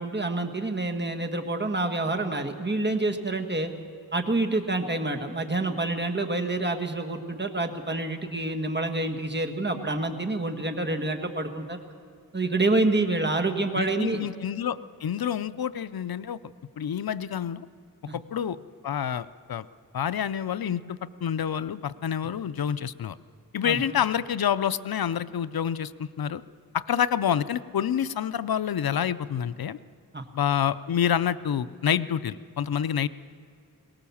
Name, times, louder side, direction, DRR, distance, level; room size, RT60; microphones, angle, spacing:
voice 1, 0.0-3.7 4.1-11.8 12.3-14.3 18.1-18.2 23.6-23.8 30.1-30.2, right 2 dB, 30° right, 4 dB, 1.6 m, -27 dB
voice 2, 13.8-16.4 16.8-17.7 18.1-18.6 18.8-19.7 19.9-23.2 23.5-26.4 26.7-29.8 30.3-33.1, left 9 dB, 85° left, 16 dB, 0.5 m, -28 dB
22.0 x 19.0 x 7.1 m, 2.1 s
wide cardioid pair, 70°, 35 cm